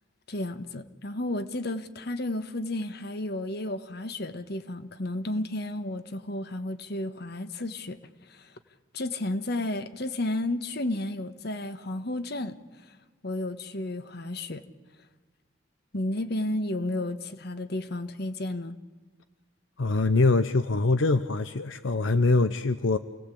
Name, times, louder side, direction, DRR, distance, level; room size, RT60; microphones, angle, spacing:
voice 1, 0.3-8.0 8.3-8.5 8.9-12.6 12.9-13.0 13.2-14.6 15.9-18.8, left 1 dB, 55° left, 1.4 m, -32 dB
voice 2, 19.8-23.0, left 3 dB, 80° left, 0.7 m, -23 dB
28.5 x 18.0 x 8.5 m
head